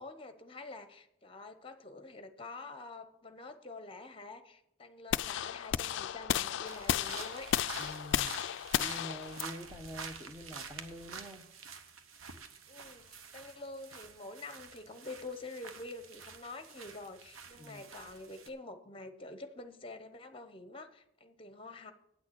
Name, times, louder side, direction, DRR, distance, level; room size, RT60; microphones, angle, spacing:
voice 1, 0.0-7.5 12.7-21.9, left 2 dB, 25° left, 9 dB, 0.9 m, -47 dB
sound 1, 5.1-11.2, left 10 dB, 60° left, 0.3 m, -34 dB
sound 2, 6.6-18.5, right 5 dB, 90° right, 1.0 m, -48 dB
voice 2, 7.8-8.4 8.7-11.4 17.5-17.9, equal, 10° right, 5 dB, 0.9 m, -46 dB
9.1 x 6.3 x 8.1 m, 0.78 s
head